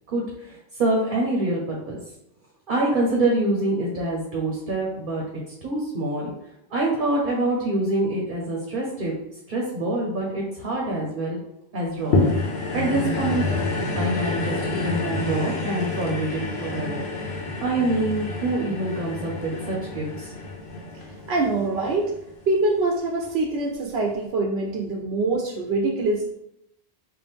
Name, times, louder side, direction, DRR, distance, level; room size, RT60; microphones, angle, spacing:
voice 1, 0.1-2.0 2.7-5.2 5.6-6.3 6.7-9.1 9.5-11.4 11.7-12.2 12.7-13.6 14.0-17.1 17.6-20.3, right 2 dB, 55° right, -2 dB, 0.9 m, -25 dB
sound 1, 12.1-22.6 23.2-23.3, left 2 dB, 85° left, 1.0 m, -28 dB
voice 2, 21.3-22.1 22.5-26.3, right 2 dB, 85° right, 1 dB, 0.9 m, -24 dB
4.0 x 2.5 x 3.4 m, 0.81 s
omnidirectional pair, 1.0 m